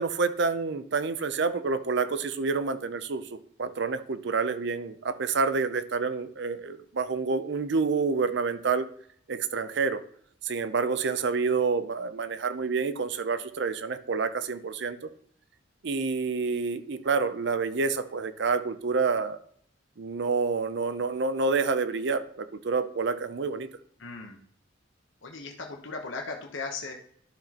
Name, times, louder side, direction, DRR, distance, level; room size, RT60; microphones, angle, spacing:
voice 1, 0.0-3.2 3.6-8.9 9.3-10.0 10.4-15.0 15.8-19.4 20.0-23.7, right 4 dB, 60° right, 12 dB, 0.5 m, -28 dB
voice 2, 24.0-24.4 25.2-26.9, left 4 dB, 70° left, 1 dB, 1.0 m, -37 dB
11.5 x 6.0 x 2.9 m, 0.63 s
head